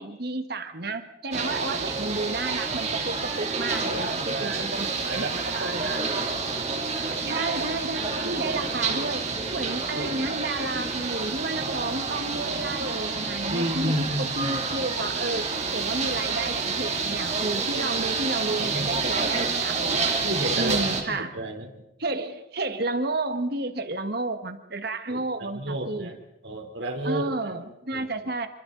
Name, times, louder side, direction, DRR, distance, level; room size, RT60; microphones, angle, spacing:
voice 1, 0.0-5.9 7.2-9.2 9.5-20.1 20.6-21.4 22.0-26.1 27.0-28.5, right 2 dB, 55° right, 8 dB, 1.6 m, -31 dB
sound 1, 1.3-21.0, right 4 dB, 35° right, 2.9 m, -28 dB
voice 2, 3.9-4.6 4.9-6.4 9.9-10.2 13.5-14.6 18.7-18.9 19.9-21.7 25.1-25.2 25.5-26.1 26.4-27.2 27.9-28.1, right 1 dB, 70° right, 4 dB, 3.5 m, -32 dB
28.5 x 23.5 x 4.0 m, 0.90 s
head